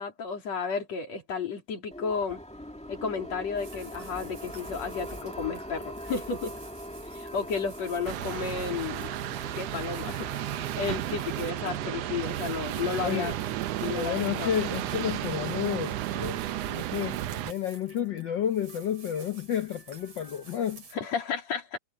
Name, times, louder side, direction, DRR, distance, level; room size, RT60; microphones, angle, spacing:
voice 1, 0.0-2.4 2.9-6.5 7.1-9.1 9.5-13.3 13.8-14.5 20.9-21.8, left 5 dB, 60° left, 4.6 m, -33 dB
sound 1, 1.9-16.9, equal, ahead, 2.1 m, -43 dB
sound 2, 3.6-21.0, right 3 dB, 55° right, 7.0 m, -51 dB
sound 3, 8.1-17.5, right 15 dB, 75° right, 1.6 m, -33 dB
voice 2, 13.0-13.3 13.9-16.4 16.7-20.8, left 9 dB, 80° left, 1.0 m, -31 dB
omnidirectional pair, 3.3 m